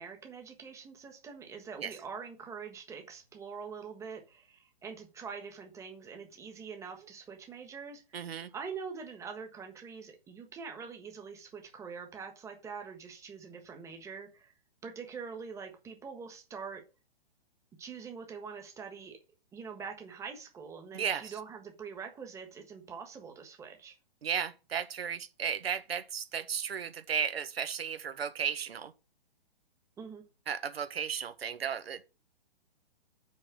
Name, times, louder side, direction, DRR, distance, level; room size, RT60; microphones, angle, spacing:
voice 1, 0.0-14.5 14.8-16.8 17.8-19.2 19.5-23.9 30.0-30.2, right 6 dB, 10° right, 1.4 m, -44 dB
voice 2, 8.1-8.5 20.9-21.3 24.2-28.9 30.5-32.1, right 7 dB, 80° right, 1.4 m, -34 dB
6.5 x 5.6 x 6.3 m
hypercardioid pair, 150°, 30 cm